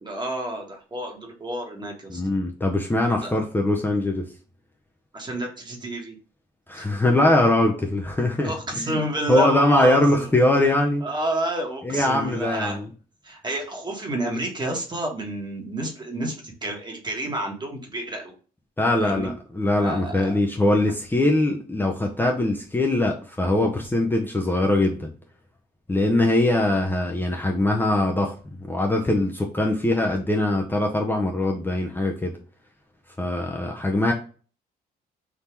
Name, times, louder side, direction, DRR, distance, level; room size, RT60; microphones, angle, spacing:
voice 1, 0.0-2.2 3.2-3.5 5.1-6.2 6.7-6.9 8.4-10.3 11.0-12.8 13.2-18.3 19.0-19.3 19.7-20.3, right 1 dB, 25° right, 1 dB, 1.4 m, -30 dB
voice 2, 2.1-4.3 6.7-9.0 9.3-11.0 11.8-12.9 18.8-25.1 25.9-28.3 28.6-32.4 33.2-34.1, left 1 dB, 10° left, 0 dB, 0.7 m, -22 dB
3.7 x 2.7 x 4.5 m, 0.38 s
cardioid pair, 90°, 17 cm